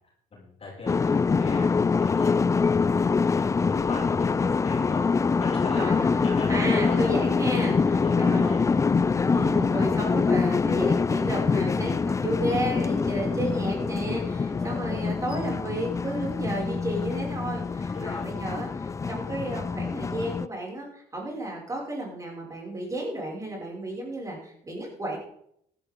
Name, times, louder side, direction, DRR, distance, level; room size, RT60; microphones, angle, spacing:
voice 1, 0.3-2.5 3.3-5.0 5.4-5.9 6.2-7.1 7.9-9.3 14.5-14.7 17.9-18.7, left 2 dB, 35° left, -5 dB, 6.1 m, -40 dB
sound 1, 0.9-20.5, left 5 dB, 20° left, 0.4 m, -25 dB
voice 2, 5.7-7.8 8.2-8.5 9.3-25.2, right 1 dB, 20° right, -2 dB, 5.9 m, -32 dB
15.5 x 12.0 x 3.8 m, 0.70 s
cardioid pair, 110°, 17 cm